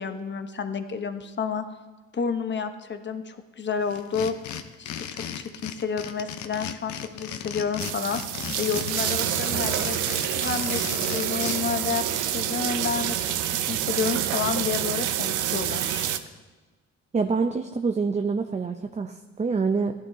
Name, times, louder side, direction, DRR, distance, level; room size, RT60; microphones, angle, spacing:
voice 1, 0.0-1.6 2.1-4.3 4.8-10.0 10.3-16.1, left 6 dB, 35° left, 8 dB, 1.0 m, -30 dB
sound 1, 3.9-11.6, left 9 dB, 70° left, 0.8 m, -35 dB
sound 2, 7.8-16.2, right 11 dB, 90° right, 0.7 m, -27 dB
voice 2, 17.1-19.9, right 4 dB, 25° right, 6 dB, 0.6 m, -26 dB
16.0 x 11.0 x 2.8 m, 1.3 s
cardioid pair, 90°, 30 cm